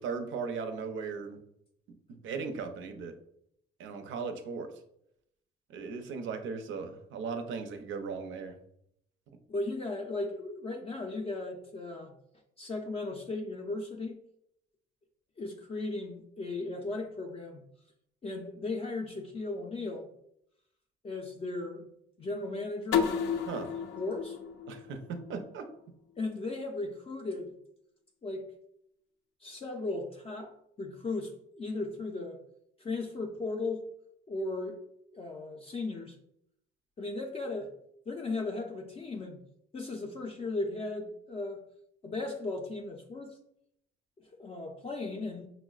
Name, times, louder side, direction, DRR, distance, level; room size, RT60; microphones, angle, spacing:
voice 1, 0.0-1.4 2.1-3.1 3.8-4.7 5.7-8.5 23.5-23.7 24.7-25.7, right 5 dB, 75° right, 7 dB, 0.5 m, -37 dB
voice 2, 9.5-12.1 12.6-14.2 15.4-17.6 18.2-20.1 21.0-21.9 22.2-23.1 24.0-24.4 26.2-27.5 28.2-28.6 29.4-32.4 32.8-33.9 34.3-34.8 35.1-36.2 37.0-37.7 38.1-39.4 39.7-41.6 42.0-43.4 44.2-45.5, left 2 dB, 30° left, 1 dB, 0.4 m, -36 dB
sound 1, 22.9-25.7, left 7 dB, 90° left, 0.4 m, -32 dB
5.4 x 2.0 x 2.3 m, 0.76 s
cardioid pair, 90°, 20 cm